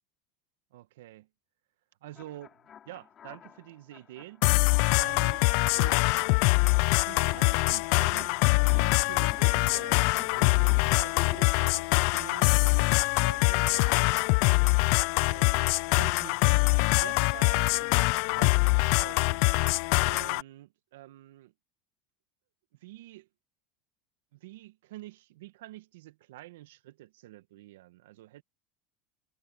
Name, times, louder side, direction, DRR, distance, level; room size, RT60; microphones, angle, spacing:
voice 1, 0.7-1.3 2.0-4.5 4.9-5.5 5.7-6.0 7.0-8.4 8.7-14.2 15.3-19.5 20.0-21.5 22.7-23.3 24.3-28.4, right 16 dB, 80° right, 1.7 m, -47 dB
sound 1, 2.1-11.5, left 8 dB, 35° left, 4.8 m, -49 dB
sound 2, 4.4-20.4, left 30 dB, 65° left, 0.4 m, -24 dB
hypercardioid pair, 95°, 0 cm